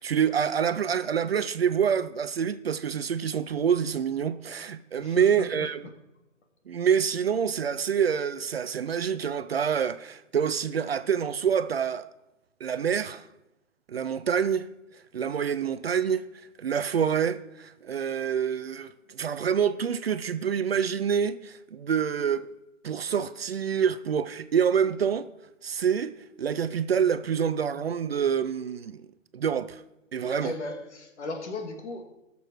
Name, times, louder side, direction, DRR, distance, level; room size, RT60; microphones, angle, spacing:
voice 1, 0.0-5.9 6.7-12.1 12.6-13.2 13.9-14.7 15.1-16.3 16.6-22.5 22.8-25.3 25.6-29.1 29.3-29.8 30.1-30.5, right 7 dB, 50° right, 0.5 m, -27 dB
voice 2, 5.0-5.5 30.2-32.0, left 2 dB, 55° left, 2.3 m, -36 dB
16.0 x 6.9 x 4.7 m
hypercardioid pair, 160°, 40 cm